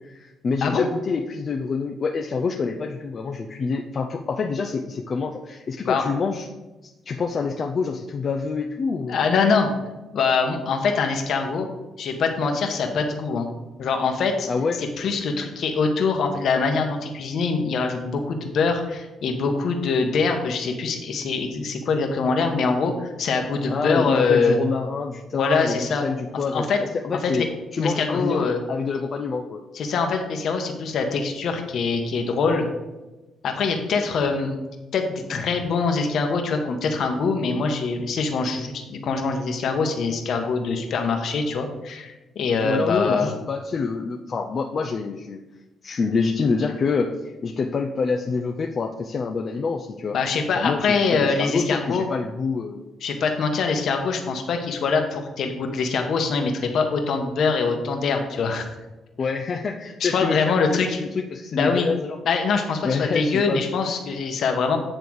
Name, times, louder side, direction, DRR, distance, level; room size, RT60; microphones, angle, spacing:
voice 1, 0.0-6.5 6.8-9.2 14.5-14.8 23.7-26.7 26.9-27.4 27.7-29.6 42.6-45.4 45.8-50.2 50.5-52.8 59.2-62.2 62.8-63.6, left 4 dB, 45° left, 2 dB, 0.5 m, -27 dB
voice 2, 9.1-9.7 10.1-11.7 12.0-13.5 13.8-14.5 14.8-24.6 25.3-26.0 26.5-26.8 27.3-27.4 27.8-28.6 29.7-32.7 33.4-34.6 34.9-43.3 50.1-52.1 53.0-58.7 60.0-61.0 61.5-61.9 62.2-64.8, left 4 dB, 65° left, 4 dB, 1.2 m, -23 dB
9.1 x 3.4 x 6.2 m, 1.1 s
cardioid pair, 90°, 0 cm